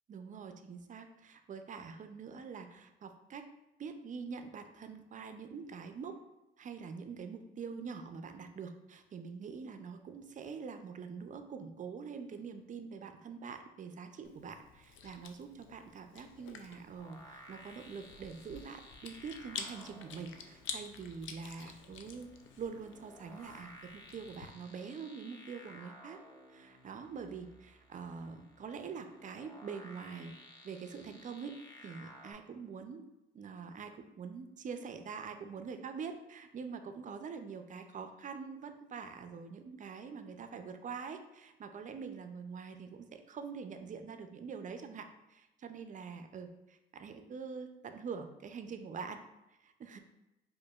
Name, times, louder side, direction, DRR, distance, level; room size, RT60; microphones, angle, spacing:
voice 1, 0.1-3.5 3.8-6.2 6.6-22.3 22.6-26.2 26.5-30.4 30.6-31.5 31.8-33.1 33.3-49.2 49.6-50.0, right 5 dB, 40° right, 7 dB, 0.4 m, -45 dB
Chewing mastication, 14.2-24.5, left 6 dB, 80° left, 0.4 m, -49 dB
sound 1, 17.0-32.3, equal, 20° left, 0.7 m, -56 dB
4.8 x 2.5 x 2.3 m, 0.96 s
cardioid pair, 90°, 20 cm